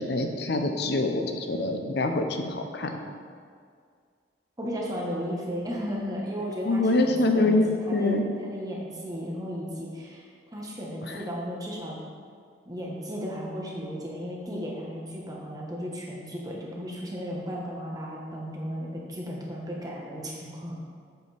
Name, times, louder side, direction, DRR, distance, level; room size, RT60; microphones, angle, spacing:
voice 1, 0.0-3.0 6.6-8.3 11.1-11.2, left 2 dB, 65° left, 5 dB, 0.7 m, -25 dB
voice 2, 4.6-10.2 10.5-12.0 12.6-20.8, equal, 20° right, -3 dB, 1.2 m, -35 dB
8.0 x 6.8 x 3.4 m, 2.1 s
head